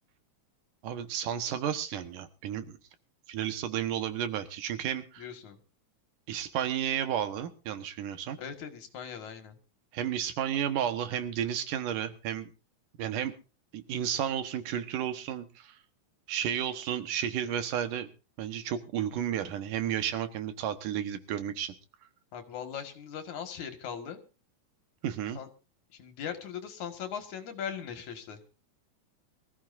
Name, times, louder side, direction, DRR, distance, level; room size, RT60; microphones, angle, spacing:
voice 1, 0.8-2.8 3.3-5.3 6.3-8.4 9.9-12.5 13.0-13.3 13.7-15.7 16.3-18.1 18.4-21.7 25.0-25.4, right 10 dB, 90° right, 9 dB, 3.0 m, -32 dB
voice 2, 5.2-5.6 8.4-9.6 22.3-24.2 25.3-25.5 25.9-28.4, left 8 dB, 70° left, 7 dB, 3.1 m, -39 dB
24.0 x 14.5 x 2.6 m, 0.33 s
omnidirectional pair, 3.6 m